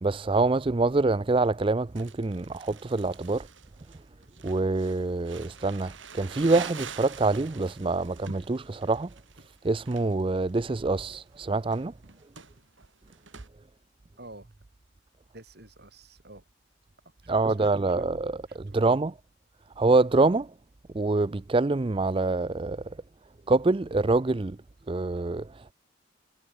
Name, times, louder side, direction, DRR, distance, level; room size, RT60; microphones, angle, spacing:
voice 1, 0.0-3.5 4.4-9.1 9.6-11.9 17.3-19.1 19.8-20.5 20.9-23.0 23.5-24.6 24.9-25.7, right 3 dB, 25° right, 0.4 m, -25 dB
Crumpling crinkling, 2.0-13.5, right 6 dB, 65° right, 7.5 m, -46 dB
voice 2, 14.2-14.5 15.3-16.4 17.2-17.9 18.5-18.8, right 2 dB, 50° right, 7.8 m, -49 dB
head